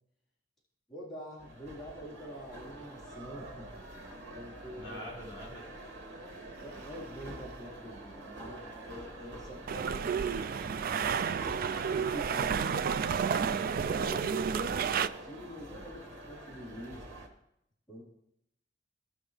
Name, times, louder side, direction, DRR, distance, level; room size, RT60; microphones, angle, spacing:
voice 1, 0.9-3.7 4.3-5.0 6.3-10.5 11.9-12.9 13.3-17.2 17.9-18.0, equal, 5° left, -10 dB, 3.8 m, -45 dB
sound 1, 1.4-17.3, right 1 dB, 80° right, 2.4 m, -46 dB
voice 2, 4.8-5.7, equal, 30° left, -5 dB, 4.0 m, -44 dB
sound 2, 9.7-15.1, right 6 dB, 50° right, 0.4 m, -31 dB
17.5 x 6.3 x 3.3 m, 0.78 s
head